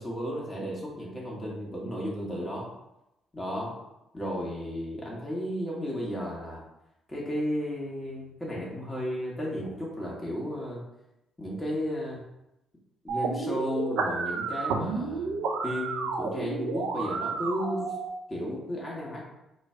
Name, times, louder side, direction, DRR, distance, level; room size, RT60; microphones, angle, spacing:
voice 1, 0.0-2.7 3.3-3.7 4.1-6.6 7.1-10.8 11.4-12.2 13.0-15.4 15.6-17.9 18.3-19.2, equal, 20° left, -4 dB, 1.2 m, -33 dB
sound 1, 13.1-18.1, right 4 dB, 75° right, 0.4 m, -31 dB
3.1 x 2.3 x 4.3 m, 0.89 s
hypercardioid pair, 50°, 0 cm